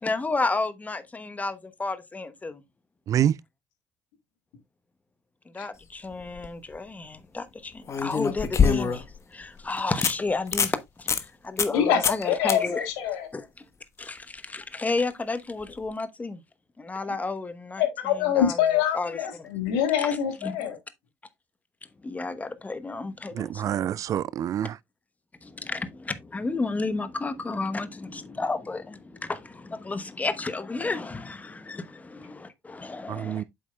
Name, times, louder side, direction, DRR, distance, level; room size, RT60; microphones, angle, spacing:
voice 1, 0.0-2.6 5.5-12.9 13.3-13.5 14.0-16.4 16.8-19.5 20.0-20.1 20.4-20.7 22.0-23.7 25.4-33.4, left 3 dB, 20° left, 1.0 m, -32 dB
sound 1, 6.1-6.5 7.9-9.2 9.6-9.7 10.0-10.1 10.5-10.8 11.1-11.2 11.6-11.8 12.0-12.2 12.5-12.6 15.7-15.8, left 6 dB, 40° left, 1.2 m, -24 dB
voice 2, 11.7-13.3 17.8-20.8, left 9 dB, 75° left, 1.9 m, -25 dB
voice 3, 23.3-24.8 33.1-33.4, right 10 dB, 45° right, 0.3 m, -26 dB
8.4 x 7.1 x 2.2 m
hypercardioid pair, 55°, 8 cm